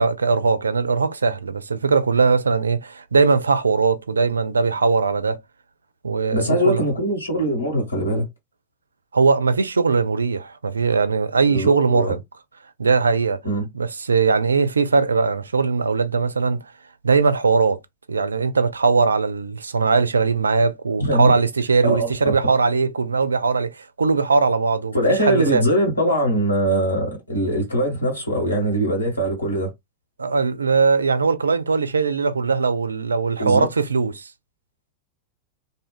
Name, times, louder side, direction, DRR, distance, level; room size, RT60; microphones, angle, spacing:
voice 1, 0.0-5.4 6.0-6.8 9.1-12.2 12.8-13.4 13.7-16.6 17.0-17.8 18.1-25.6 30.2-34.3, right 4 dB, 75° right, 0.4 m, -20 dB
voice 2, 6.3-8.3 11.5-12.2 13.4-13.7 21.0-21.3 21.8-22.3 24.9-29.7 33.4-33.7, equal, 80° left, 1.6 m, -22 dB
2.6 x 2.3 x 2.3 m
figure-of-eight pair, 90°, 0 cm